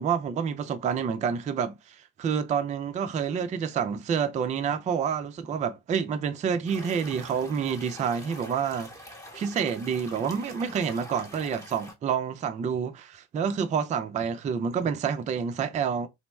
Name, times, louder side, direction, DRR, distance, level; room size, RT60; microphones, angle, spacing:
voice 1, 0.0-8.9 9.3-16.1, right 7 dB, 20° right, 0.3 m, -28 dB
sound 1, 6.7-11.9, equal, 5° left, 0.9 m, -45 dB
2.9 x 2.0 x 3.3 m
figure-of-eight pair, 45°, 44 cm